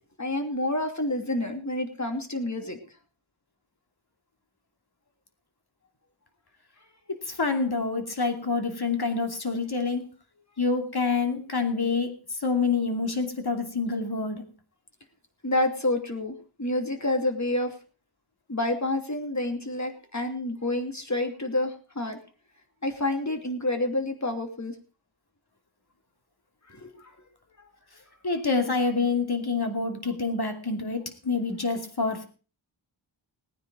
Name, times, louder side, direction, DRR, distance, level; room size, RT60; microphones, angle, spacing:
voice 1, 0.2-2.8 15.4-17.7 18.5-22.2 22.8-24.7 26.7-27.1, left 1 dB, 35° left, 5 dB, 2.8 m, -28 dB
voice 2, 7.1-10.1 10.6-14.5 28.2-32.2, left 4 dB, 55° left, 5 dB, 2.6 m, -27 dB
18.5 x 9.8 x 4.9 m, 0.37 s
wide cardioid pair, 65°, 47 cm